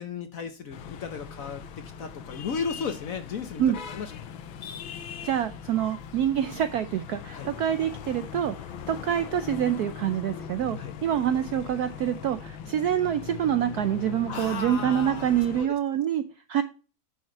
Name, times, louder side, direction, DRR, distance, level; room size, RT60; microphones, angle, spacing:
voice 1, 0.0-3.6 3.9-4.3 7.3-7.5 10.8-10.9 14.3-15.7, left 6 dB, 60° left, 8 dB, 1.0 m, -35 dB
sound 1, 0.7-15.7, left 8 dB, 85° left, 1.6 m, -40 dB
voice 2, 5.2-8.6 8.9-16.6, right 10 dB, 75° right, 11 dB, 0.9 m, -26 dB
10.0 x 5.6 x 4.4 m, 0.35 s
omnidirectional pair, 2.2 m